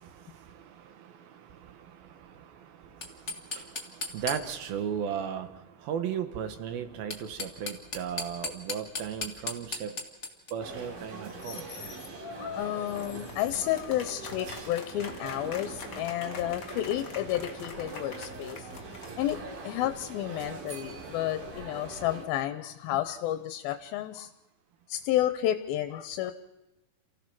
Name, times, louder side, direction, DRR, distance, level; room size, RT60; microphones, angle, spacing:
voice 1, 0.0-10.0 10.5-11.6, right 8 dB, 75° right, 8 dB, 3.0 m, -37 dB
sound 1, 2.9-4.8 6.9-10.5, left 3 dB, 35° left, 1.2 m, -37 dB
sound 2, 10.6-22.3, right 3 dB, 60° right, 4.0 m, -42 dB
voice 2, 11.4-12.0 12.5-18.7 19.2-19.4 19.6-24.3 24.9-26.3, left 13 dB, 80° left, 10 dB, 2.6 m, -31 dB
sound 3, 12.1-19.6, left 5 dB, 60° left, 1.1 m, -44 dB
28.0 x 16.0 x 6.1 m, 1.0 s
omnidirectional pair, 4.3 m